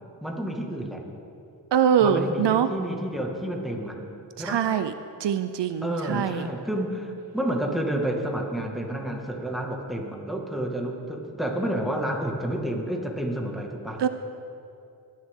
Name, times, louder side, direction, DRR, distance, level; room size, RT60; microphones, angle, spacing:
voice 1, 0.2-1.0 2.0-4.0 4.4-4.7 5.8-14.0, right 1 dB, ahead, 0 dB, 1.8 m, -30 dB
voice 2, 1.7-2.7 4.4-4.9 5.2-6.5 14.0-14.1, right 8 dB, 75° right, 11 dB, 0.6 m, -23 dB
20.5 x 10.5 x 3.7 m, 2.6 s
wide cardioid pair, 90°, 43 cm